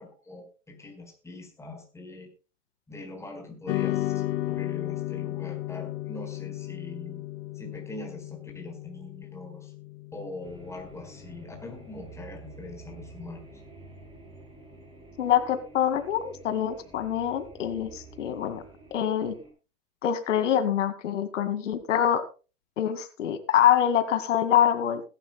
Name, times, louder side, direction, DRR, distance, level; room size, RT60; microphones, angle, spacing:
voice 1, 0.0-2.3 2.9-7.2 7.5-9.7 10.1-13.4, left 2 dB, 5° left, 3 dB, 4.4 m, -42 dB
sound 1, 3.7-12.2, left 16 dB, 45° left, 1.1 m, -34 dB
sound 2, 10.4-19.5, right 3 dB, 15° right, 5.9 m, -49 dB
voice 2, 15.2-18.6 18.9-19.3 20.0-22.2 22.8-25.0, left 10 dB, 80° left, 10 dB, 2.1 m, -25 dB
21.0 x 11.5 x 2.2 m, 0.32 s
hypercardioid pair, 130°, 36 cm